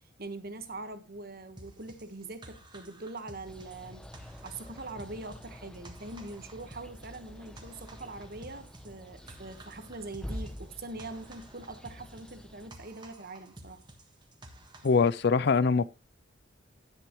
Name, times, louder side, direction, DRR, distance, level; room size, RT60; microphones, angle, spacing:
voice 1, 0.2-4.0 4.4-13.8, right 2 dB, 50° right, 1.4 m, -43 dB
sound 1, 1.6-15.3, right 1 dB, 20° right, 1.4 m, -53 dB
sound 2, 3.5-12.7, equal, 5° left, 0.8 m, -47 dB
voice 2, 14.8-15.9, left 5 dB, 55° left, 0.4 m, -23 dB
10.5 x 10.5 x 3.1 m
head